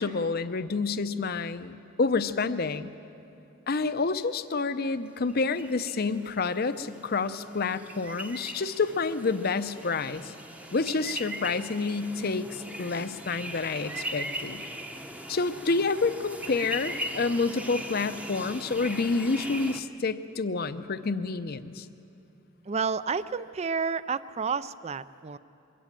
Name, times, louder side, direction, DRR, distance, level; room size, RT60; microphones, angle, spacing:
voice 1, 0.0-2.9 3.7-10.3 10.7-14.6 15.3-21.8, left 4 dB, 45° left, 12 dB, 0.6 m, -28 dB
sound 1, 5.3-19.8, equal, 5° right, 0.8 m, -40 dB
voice 2, 22.7-25.4, right 5 dB, 30° right, 16 dB, 0.4 m, -30 dB
23.0 x 16.5 x 7.5 m, 2.9 s
head